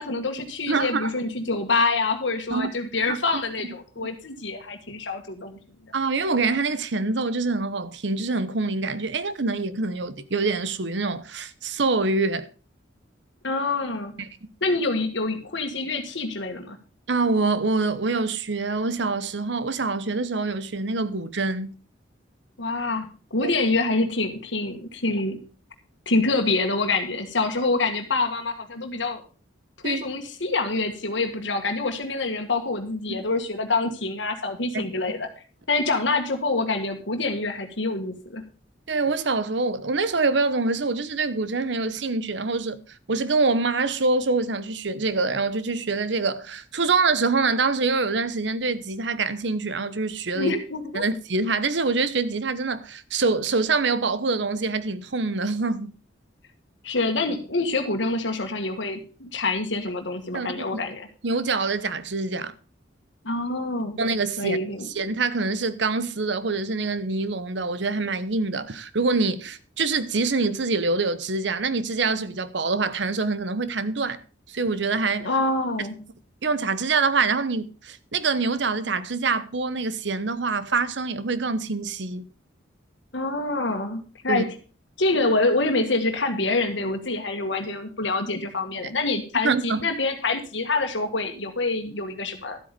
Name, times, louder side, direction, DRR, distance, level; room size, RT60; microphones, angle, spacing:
voice 1, 0.0-5.6 13.4-14.1 14.6-16.8 22.6-25.4 26.1-29.2 29.8-35.3 35.7-38.4 50.3-51.0 56.8-61.1 63.2-64.0 64.4-64.9 75.2-76.0 83.1-84.5 85.0-92.6, left 3 dB, 75° left, 1.8 m, -26 dB
voice 2, 0.7-1.1 2.5-2.7 3.3-3.4 5.9-12.5 14.2-14.3 17.1-21.7 23.4-23.5 29.8-30.0 33.1-33.2 34.7-34.9 38.9-42.8 43.1-50.5 50.9-55.9 60.3-60.6 61.2-62.5 64.0-64.6 64.9-74.2 74.5-75.3 76.4-82.2 84.3-84.4 89.4-89.8, right 3 dB, 70° right, 0.9 m, -25 dB
12.5 x 8.4 x 5.2 m
head